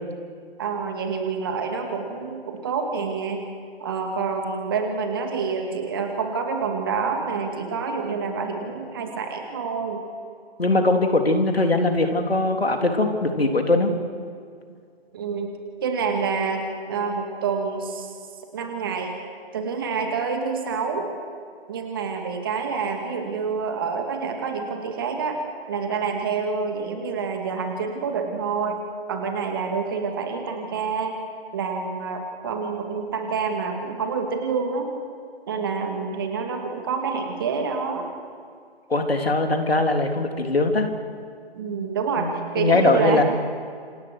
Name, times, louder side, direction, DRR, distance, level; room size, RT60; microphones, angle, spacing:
voice 1, 0.6-3.5 3.8-10.0 15.1-15.5 15.8-18.1 18.5-19.2 19.5-21.1 21.7-25.4 25.7-28.8 29.1-31.1 31.5-34.9 35.5-38.1 41.5-43.2, right 5 dB, 20° right, 4 dB, 2.4 m, -27 dB
voice 2, 10.6-13.9 38.9-40.9 42.2-42.3 42.6-43.2, left 2 dB, 65° left, 4 dB, 3.6 m, -21 dB
28.5 x 27.0 x 6.5 m, 2.2 s
figure-of-eight pair, 150°, 32 cm